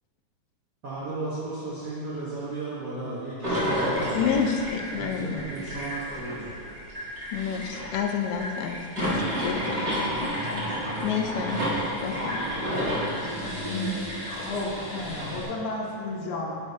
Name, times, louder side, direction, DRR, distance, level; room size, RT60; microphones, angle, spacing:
voice 1, 0.8-4.2 5.0-6.6, right 2 dB, 70° right, -10 dB, 1.0 m, -35 dB
sound 1, 3.4-15.4, equal, 35° right, 0.9 m, -30 dB
voice 2, 4.1-5.4 7.3-10.3 11.0-11.6 12.0-12.4, left 7 dB, 90° left, 3 dB, 2.3 m, -29 dB
voice 3, 14.3-16.6, left 2 dB, 70° left, -3 dB, 2.2 m, -32 dB
9.3 x 5.6 x 2.7 m, 2.4 s
omnidirectional pair, 3.8 m